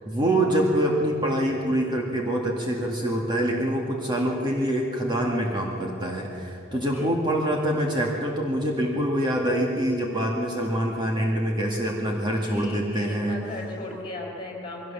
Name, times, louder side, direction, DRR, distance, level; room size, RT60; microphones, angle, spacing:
voice 1, 0.1-13.4, right 1 dB, 20° right, -1 dB, 2.0 m, -25 dB
voice 2, 6.7-7.1 12.3-14.9, left 1 dB, 25° left, -1 dB, 4.9 m, -36 dB
22.5 x 17.5 x 7.4 m, 2.9 s
head